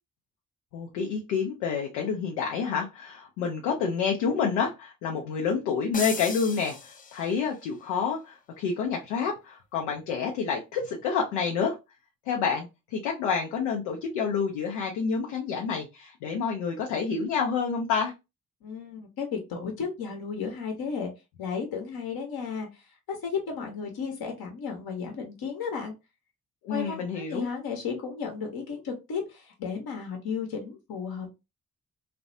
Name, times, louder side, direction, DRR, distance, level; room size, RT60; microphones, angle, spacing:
voice 1, 0.7-11.8 12.3-18.1 26.6-27.5, left 6 dB, 85° left, 0 dB, 0.5 m, -28 dB
sound 1, 5.9-7.6, left 4 dB, 20° left, 0.4 m, -37 dB
voice 2, 18.6-21.1 21.4-25.9 26.7-31.4, left 5 dB, 60° left, 2 dB, 0.9 m, -34 dB
2.5 x 2.0 x 2.5 m, 0.25 s
hypercardioid pair, 40°, 41 cm